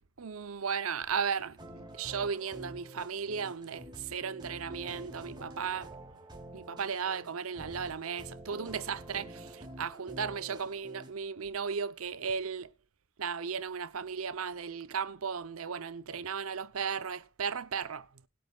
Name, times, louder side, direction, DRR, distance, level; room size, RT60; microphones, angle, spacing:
voice 1, 0.2-1.6 1.9-5.9 6.5-12.7 13.2-18.1, right 6 dB, 85° right, 0.7 m, -35 dB
sound 1, 1.6-11.1, right 1 dB, 20° right, 3.3 m, -48 dB
20.0 x 8.7 x 2.3 m
head